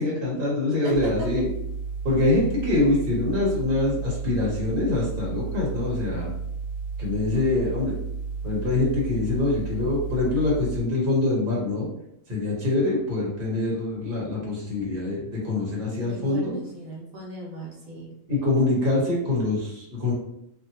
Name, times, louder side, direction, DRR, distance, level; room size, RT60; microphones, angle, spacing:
voice 1, 0.0-1.5 2.0-6.3 7.0-7.9 8.4-11.9 12.3-16.5 18.3-20.1, left 2 dB, 45° right, -5 dB, 1.3 m, -24 dB
voice 2, 0.8-1.3 16.0-18.1, right 1 dB, 90° right, -2 dB, 1.2 m, -36 dB
sound 1, 0.9-10.8, right 5 dB, 80° left, 1.1 m, -32 dB
2.8 x 2.7 x 2.7 m, 0.80 s
omnidirectional pair, 1.4 m